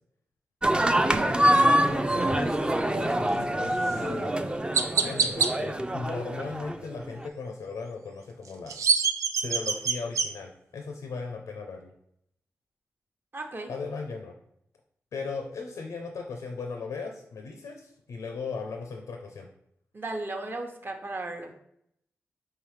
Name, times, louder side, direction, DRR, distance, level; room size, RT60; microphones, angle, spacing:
sound 1, 0.6-7.3, right 1 dB, 15° right, 0.4 m, -25 dB
voice 1, 1.0-4.4 5.0-8.8 9.4-11.9 13.7-14.4 15.1-19.5, left 4 dB, 80° left, 4 dB, 0.5 m, -37 dB
Chirp tweet, 3.8-4.0 4.7-5.5 8.4-10.3, right 6 dB, 75° right, 0.4 m, -25 dB
voice 2, 13.3-13.7 19.9-21.5, right 2 dB, 40° right, 3 dB, 0.9 m, -35 dB
4.7 x 3.2 x 3.2 m, 0.72 s
supercardioid pair, 40°, 5 cm